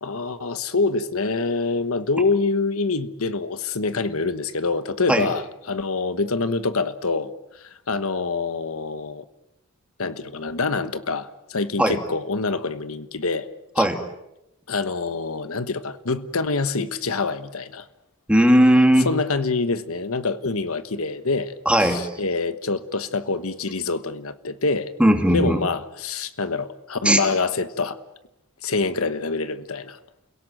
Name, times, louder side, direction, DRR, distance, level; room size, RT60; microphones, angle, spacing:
voice 1, 0.0-9.2 10.0-13.5 13.8-13.9 14.7-17.9 19.0-21.5 21.8-24.9 25.3-28.0 28.6-30.0, left 3 dB, 75° left, 1.3 m, -26 dB
voice 2, 18.3-19.1 21.6-22.1 25.0-25.6 27.0-27.2, equal, 5° right, 2.9 m, -17 dB
29.5 x 17.5 x 9.0 m
head